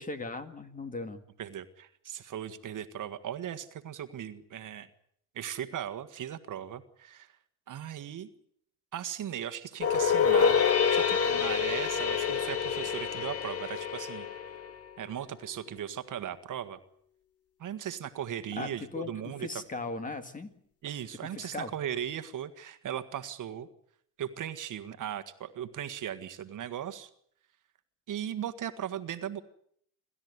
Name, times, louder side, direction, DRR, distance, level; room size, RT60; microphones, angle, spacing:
voice 1, 0.0-1.2 18.5-20.5 21.2-21.7, left 3 dB, 20° left, 9 dB, 2.1 m, -38 dB
voice 2, 1.4-4.9 5.3-7.3 7.7-8.3 8.9-10.6 10.9-14.3 15.0-16.8 17.6-19.5 20.8-23.7 24.2-27.1 28.1-29.4, right 10 dB, 50° right, 10 dB, 1.6 m, -38 dB
sound 1, 9.8-15.0, left 7 dB, 35° left, 1.9 m, -27 dB
27.5 x 13.0 x 9.6 m, 0.68 s
cardioid pair, 125°, 40 cm